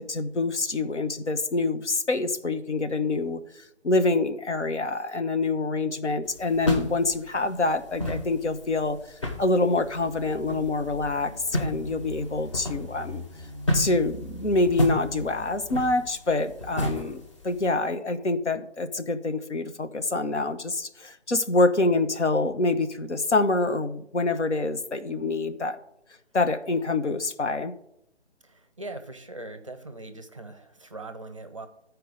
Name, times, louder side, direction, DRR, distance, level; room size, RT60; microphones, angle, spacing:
voice 1, 0.0-9.0 9.4-13.2 13.7-25.8 26.3-27.7, left 3 dB, 80° left, 9 dB, 1.0 m, -26 dB
sound 1, 6.2-17.7, left 1 dB, 25° left, 0.9 m, -32 dB
voice 2, 28.4-31.7, right 2 dB, 30° right, 8 dB, 0.6 m, -41 dB
13.0 x 4.6 x 5.0 m, 0.79 s
figure-of-eight pair, 155°, 35 cm